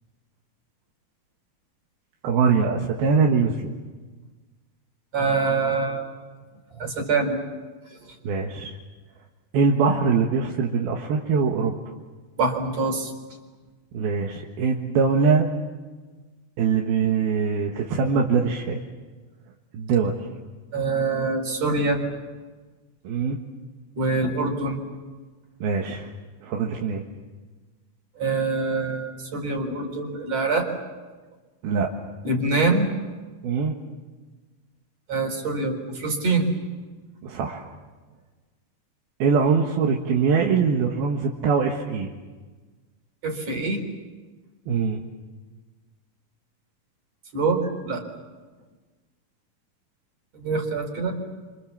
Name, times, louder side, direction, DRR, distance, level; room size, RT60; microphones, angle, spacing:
voice 1, 2.2-3.7 8.3-8.8 9.5-11.8 13.9-15.5 16.6-18.8 19.7-20.2 23.1-23.4 24.2-24.3 25.6-26.1 26.4-27.0 31.6-31.9 33.4-33.8 37.2-37.7 39.2-42.1 44.7-45.0, right 5 dB, 80° right, 0 dB, 3.5 m, -22 dB
voice 2, 5.1-6.1 6.7-7.4 7.9-8.1 12.4-13.1 20.7-22.0 24.0-24.8 28.2-30.7 32.2-32.9 35.1-36.5 43.2-43.8 47.3-48.0 50.3-51.1, right 3 dB, 45° right, 3 dB, 5.0 m, -25 dB
30.0 x 26.0 x 7.3 m, 1.3 s
omnidirectional pair, 4.3 m